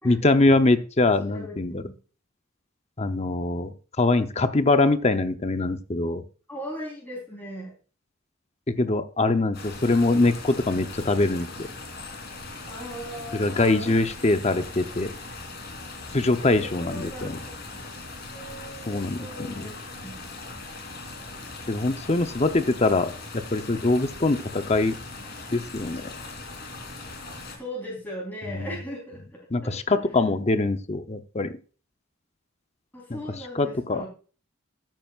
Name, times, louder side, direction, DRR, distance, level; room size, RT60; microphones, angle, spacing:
voice 1, 0.0-1.8 3.0-6.2 8.7-11.7 13.3-15.1 16.1-17.4 18.9-19.7 21.7-23.1 23.5-24.9 25.5-26.1 28.5-28.7 29.5-31.5 33.1-33.2 33.5-34.0, left 2 dB, 30° left, 9 dB, 0.8 m, -23 dB
voice 2, 1.3-1.9 6.5-7.7 12.7-14.3 16.5-17.3 17.7-17.8 18.3-19.7 20.0-20.3 27.4-30.0 32.9-34.1, equal, 10° left, -3 dB, 3.8 m, -38 dB
sound 1, 9.5-27.6, left 3 dB, 50° left, 3.3 m, -40 dB
13.5 x 9.3 x 2.5 m, 0.38 s
head